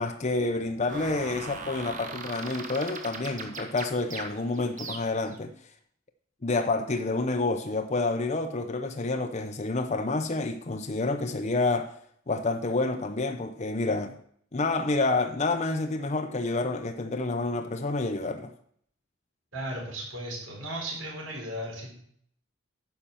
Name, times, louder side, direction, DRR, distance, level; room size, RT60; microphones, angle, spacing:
voice 1, 0.0-5.5 6.4-11.9 12.3-14.2 14.5-18.5, left 3 dB, 35° left, 0.6 m, -28 dB
sound 1, 0.9-5.4, right 4 dB, 40° right, 1.3 m, -39 dB
voice 2, 19.5-21.9, right 1 dB, 85° right, 4.5 m, -36 dB
10.0 x 5.6 x 7.3 m
head